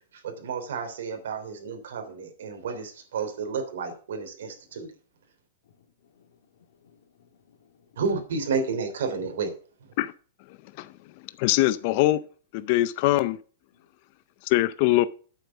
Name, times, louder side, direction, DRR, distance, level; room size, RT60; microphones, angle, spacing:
voice 1, 0.1-4.9 8.0-9.5, right 5 dB, 75° right, 3.2 m, -31 dB
voice 2, 5.6-8.0 11.0-11.2 13.7-13.9, left 7 dB, 65° left, 2.3 m, -62 dB
voice 3, 11.4-12.2 12.5-13.4 14.4-15.1, left 16 dB, 40° left, 0.5 m, -22 dB
8.9 x 7.2 x 5.9 m
supercardioid pair, 165°, 0 cm